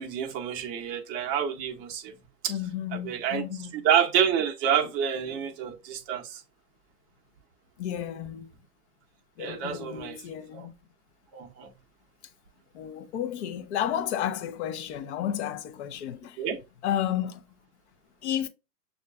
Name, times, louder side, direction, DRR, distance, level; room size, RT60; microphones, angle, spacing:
voice 1, 0.0-2.1 2.4-2.5 2.9-3.4 3.7-6.4 9.4-10.2 10.5-10.7 11.3-11.7 16.4-16.6, right 8 dB, 25° right, 0.6 m, -28 dB
voice 2, 2.5-3.9 4.8-4.9 5.3-5.5 7.8-8.5 9.4-10.7 12.7-16.4 16.8-17.4 18.2-18.5, left 10 dB, 45° left, 0.6 m, -32 dB
6.4 x 2.4 x 2.3 m
hypercardioid pair, 120°, 48 cm